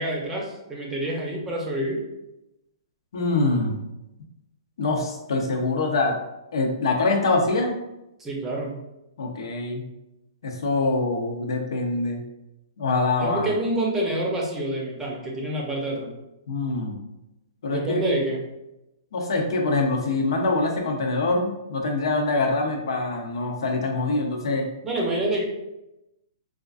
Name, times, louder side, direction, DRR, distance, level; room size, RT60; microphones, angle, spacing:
voice 1, 0.0-2.0 8.2-8.8 13.2-16.1 17.7-18.4 24.8-25.4, right 1 dB, 15° right, -2 dB, 0.7 m, -27 dB
voice 2, 3.1-3.8 4.8-6.2 6.5-7.8 9.2-9.8 10.4-12.2 12.8-13.5 16.5-17.0 17.6-18.1 19.1-24.7, left 3 dB, 70° left, 2 dB, 0.7 m, -24 dB
4.2 x 2.4 x 2.4 m, 0.93 s
hypercardioid pair, 150°, 3 cm